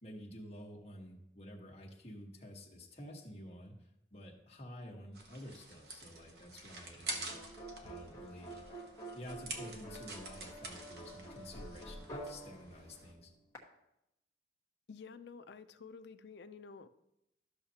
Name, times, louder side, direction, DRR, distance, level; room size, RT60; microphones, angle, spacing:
voice 1, 0.0-7.4 7.8-8.6 9.1-13.3, equal, 35° left, -1 dB, 1.3 m, -50 dB
sound 1, 5.1-13.1, right 2 dB, 65° right, 1.2 m, -47 dB
sound 2, 7.1-13.6, right 1 dB, 15° left, 1.1 m, -49 dB
voice 2, 14.9-16.9, left 5 dB, 75° left, 11 dB, 0.5 m, -51 dB
12.5 x 6.5 x 2.9 m, 0.85 s
head